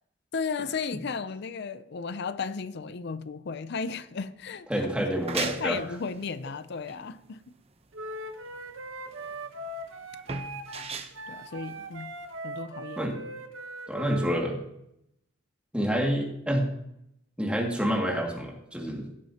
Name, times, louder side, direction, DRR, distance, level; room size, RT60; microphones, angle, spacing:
voice 1, 0.3-4.7 5.0-5.1 5.4-7.4 11.3-12.1 12.4-13.0, left 5 dB, 55° left, 0.5 m, -34 dB
voice 2, 4.7-5.8 13.0-13.2 13.9-14.6 15.7-16.7 17.4-19.1, equal, 5° right, 2.2 m, -28 dB
sound 1, 5.0-12.4, right 5 dB, 30° right, 0.8 m, -39 dB
Wind instrument woodwind instrument, 7.9-14.4, right 1 dB, 75° right, 1.1 m, -40 dB
16.5 x 7.5 x 2.9 m
head